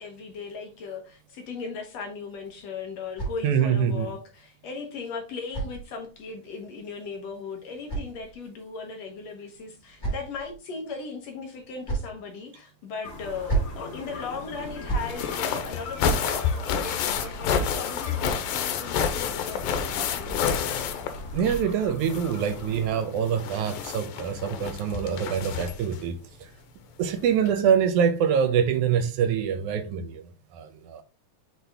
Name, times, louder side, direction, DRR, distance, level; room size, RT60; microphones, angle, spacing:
voice 1, 0.0-20.8, left 4 dB, 65° left, 1.8 m, -38 dB
sound 1, 2.3-3.9 4.9-6.4 7.3-8.7 9.5-10.6 11.5-12.2 13.2-13.9 14.6-15.2, right 4 dB, 20° left, 2.6 m, -34 dB
voice 2, 3.4-4.1 21.3-26.5 27.0-31.0, right 7 dB, 75° right, 1.9 m, -25 dB
sound 2, 13.0-22.9, left 2 dB, 45° left, 3.0 m, -40 dB
sound 3, 15.0-21.7 22.0-26.0 27.0-27.1 27.5-27.6, left 7 dB, 85° left, 2.5 m, -29 dB
6.6 x 4.4 x 3.5 m
omnidirectional pair, 4.0 m